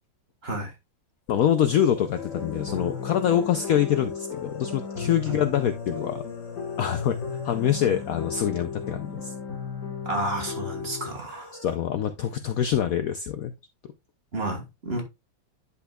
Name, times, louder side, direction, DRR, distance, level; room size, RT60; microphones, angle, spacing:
voice 1, 0.4-0.7 5.3-5.4 10.0-11.6 14.3-15.0, right 1 dB, 35° right, 1.6 m, -31 dB
voice 2, 1.3-6.2 6.8-7.2 7.4-9.3 11.6-13.5, left 10 dB, 85° left, 0.7 m, -25 dB
sound 1, 1.3-10.1 10.4-10.5 11.1-11.8, left 2 dB, 65° left, 2.1 m, -46 dB
sound 2, 2.2-11.1, left 6 dB, 50° left, 2.0 m, -35 dB
10.0 x 5.5 x 2.3 m
omnidirectional pair, 2.1 m